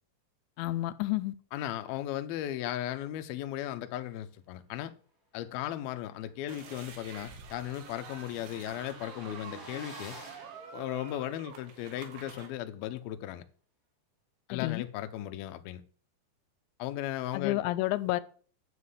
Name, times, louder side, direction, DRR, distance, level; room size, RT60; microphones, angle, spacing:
voice 1, 0.6-1.3 14.5-14.8 17.3-18.2, left 17 dB, 90° left, 3.0 m, -30 dB
voice 2, 1.5-4.9 5.3-10.2 10.7-13.4 14.5-15.8 16.8-17.6, left 12 dB, 75° left, 2.4 m, -36 dB
sound 1, 6.0-6.1 6.4-6.5 6.7-11.6, right 2 dB, 20° right, 3.6 m, -52 dB
sound 2, 6.5-12.5, right 6 dB, 85° right, 4.4 m, -47 dB
9.6 x 6.4 x 8.4 m
omnidirectional pair, 5.2 m